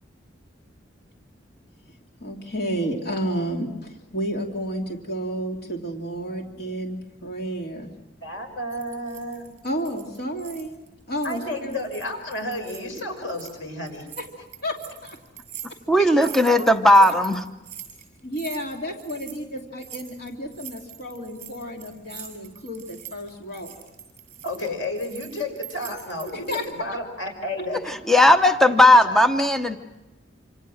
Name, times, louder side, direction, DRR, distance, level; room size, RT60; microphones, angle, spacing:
voice 1, 2.2-7.9 9.6-10.8 11.1-11.8 14.6-14.8 15.0-15.2 16.0-16.3 18.2-23.7 26.5-26.6, equal, 55° left, 2.9 m, -31 dB
voice 2, 8.2-9.5 11.2-14.1 16.0-16.7 17.0-17.1 19.1-19.2 24.4-27.8 28.7-28.8 29.0-29.2, left 1 dB, 90° left, 5.9 m, -32 dB
sound 1, 8.7-10.9 11.1-13.5 13.9-26.7, right 10 dB, 35° right, 7.4 m, -43 dB
voice 3, 15.9-17.4 28.1-29.8, left 1 dB, ahead, 0.9 m, -16 dB
27.0 x 27.0 x 6.4 m
head